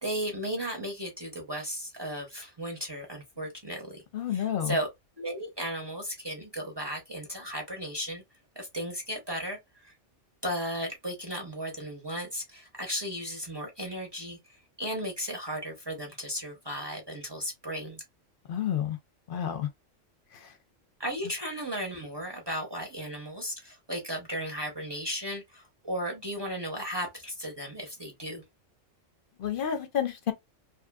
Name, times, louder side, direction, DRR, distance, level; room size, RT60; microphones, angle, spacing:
voice 1, 0.0-4.0 4.3-4.9 5.2-8.2 8.6-9.9 10.4-18.0 21.0-28.4, equal, 25° right, 0.7 m, -35 dB
voice 2, 4.1-4.8 18.5-19.0 19.3-19.7 20.3-20.5 29.4-30.3, left 9 dB, 55° left, 0.7 m, -30 dB
2.8 x 2.5 x 2.2 m
omnidirectional pair, 1.3 m